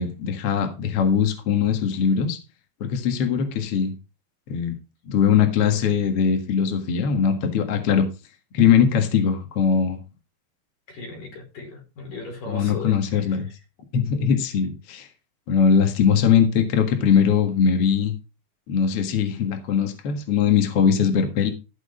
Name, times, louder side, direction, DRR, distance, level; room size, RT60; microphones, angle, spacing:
voice 1, 0.0-2.4 2.8-3.9 4.5-4.7 5.0-8.1 8.5-10.0 12.5-13.5 13.9-15.1 15.5-18.1 18.7-21.5, left 7 dB, 65° left, 6 dB, 1.4 m, -21 dB
voice 2, 5.6-5.9 10.9-12.9, left 2 dB, 45° left, 1 dB, 6.1 m, -36 dB
14.5 x 6.3 x 5.1 m, 0.30 s
omnidirectional pair, 5.4 m